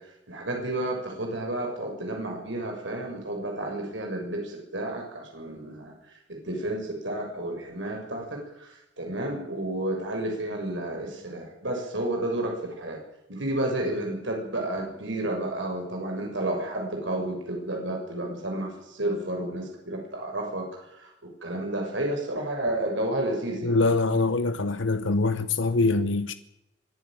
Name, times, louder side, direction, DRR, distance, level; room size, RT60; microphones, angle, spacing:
voice 1, 0.3-5.9 6.3-13.0 13.3-20.7 21.0-23.8, right 1 dB, 70° right, 7.1 m, -31 dB
voice 2, 23.6-26.3, left 3 dB, 75° left, 1.0 m, -24 dB
24.5 x 12.0 x 9.3 m
head